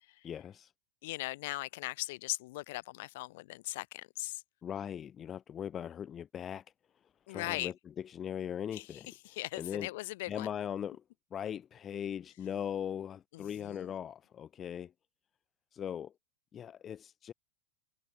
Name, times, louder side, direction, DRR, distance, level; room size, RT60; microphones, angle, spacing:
voice 1, 0.2-0.7 4.6-6.6 7.3-9.9 10.3-11.0 11.3-14.9 15.7-16.1 16.5-17.3, left 9 dB, 25° left, 0.5 m, -39 dB
voice 2, 1.0-4.4 7.3-7.7 8.7-10.5 13.3-13.9, left 20 dB, 50° left, 1.4 m, -39 dB
figure-of-eight pair, 90°, 0 cm